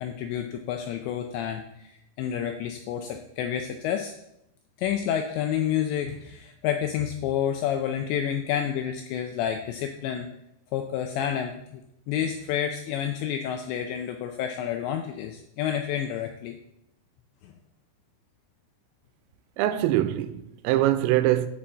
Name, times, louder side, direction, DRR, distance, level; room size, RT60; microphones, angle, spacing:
voice 1, 0.0-4.1 4.8-10.3 10.7-11.8 12.1-16.6 17.4-17.5, left 9 dB, 85° left, 2.6 m, -29 dB
voice 2, 19.6-21.5, right 14 dB, 85° right, 3.2 m, -23 dB
8.9 x 5.4 x 7.3 m
omnidirectional pair, 5.8 m